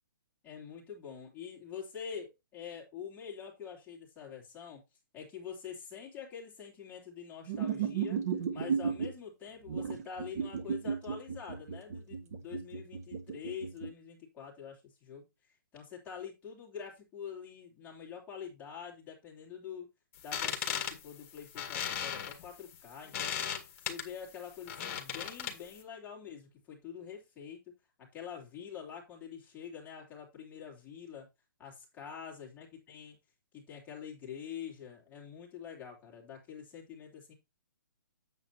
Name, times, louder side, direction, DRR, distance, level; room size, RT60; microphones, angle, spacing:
voice 1, 0.4-4.8 5.1-19.9 20.2-23.4 23.8-27.6 28.0-31.3 31.6-33.2 33.5-37.3, left 7 dB, 15° left, 2.7 m, -46 dB
sound 1, 7.5-9.1 9.7-13.9, right 7 dB, 50° right, 1.5 m, -34 dB
sound 2, 20.2-25.8, left 8 dB, 40° left, 1.8 m, -37 dB
9.0 x 7.5 x 2.8 m
hypercardioid pair, 155°, 11 cm